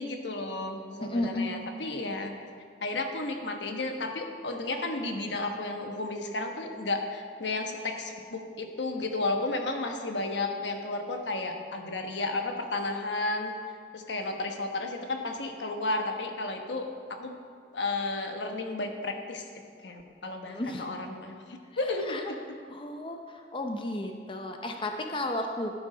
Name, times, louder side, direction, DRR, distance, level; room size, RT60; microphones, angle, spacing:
voice 1, 0.0-2.3 2.8-13.5 13.9-16.9 17.2-17.4 17.7-19.5 19.8-22.6, left 2 dB, 85° left, 4 dB, 1.2 m, -33 dB
voice 2, 1.1-1.5 20.5-20.9 22.1-22.2 22.7-25.7, left 1 dB, 30° left, 3 dB, 0.7 m, -33 dB
12.0 x 9.5 x 5.0 m, 2.1 s
head